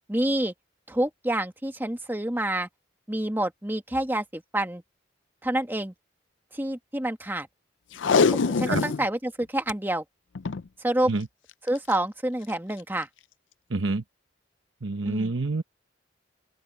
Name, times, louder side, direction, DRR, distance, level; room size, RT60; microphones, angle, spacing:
voice 1, 0.1-0.5 0.9-2.7 3.1-4.8 5.4-5.9 6.5-7.5 8.4-10.0 10.8-11.1 11.7-13.1 15.0-15.3, right 1 dB, 10° right, 1.5 m, -28 dB
Packing tape duct tape, 7.9-9.1 9.4-9.5 9.7-9.8 10.3-10.7 11.7-11.9 12.5-12.6, left 5 dB, 85° left, 0.5 m, -23 dB
voice 2, 13.7-14.0 14.8-15.6, right 3 dB, 85° right, 1.0 m, -27 dB
open air
head